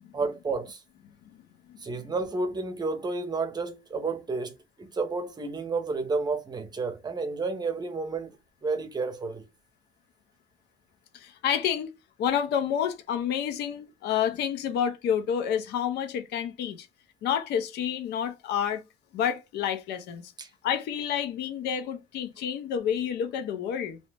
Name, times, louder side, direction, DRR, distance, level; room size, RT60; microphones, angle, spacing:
voice 1, 0.1-0.8 1.8-4.5 4.8-9.4 20.4-20.5, right 3 dB, 25° right, 0.6 m, -31 dB
voice 2, 11.1-11.9 12.2-16.9 17.2-18.8 19.1-20.3 20.6-24.0, left 8 dB, 80° left, 0.6 m, -29 dB
2.7 x 2.0 x 3.2 m
cardioid pair, 110°, 17 cm